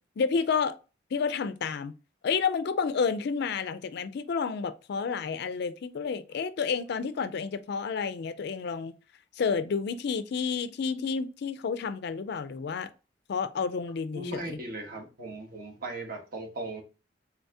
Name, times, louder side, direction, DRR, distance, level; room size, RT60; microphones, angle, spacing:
voice 1, 0.2-0.8 1.1-1.9 2.2-8.9 9.4-12.9 13.3-14.6, left 5 dB, 60° left, 0.4 m, -30 dB
voice 2, 14.1-16.8, right 2 dB, 55° right, 1.2 m, -38 dB
4.0 x 2.7 x 3.4 m
head